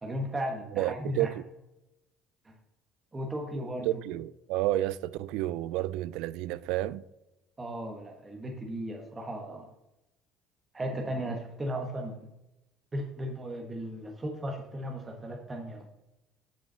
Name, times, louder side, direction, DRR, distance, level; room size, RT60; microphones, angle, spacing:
voice 1, 0.0-1.3 2.4-2.5 3.1-4.0 7.6-9.7 10.7-12.3 12.9-15.9, right 1 dB, 20° right, 1.2 m, -36 dB
voice 2, 0.7-1.4 3.9-7.0, right 15 dB, 80° right, 0.3 m, -30 dB
7.5 x 5.6 x 5.5 m
cardioid pair, 105°, 0 cm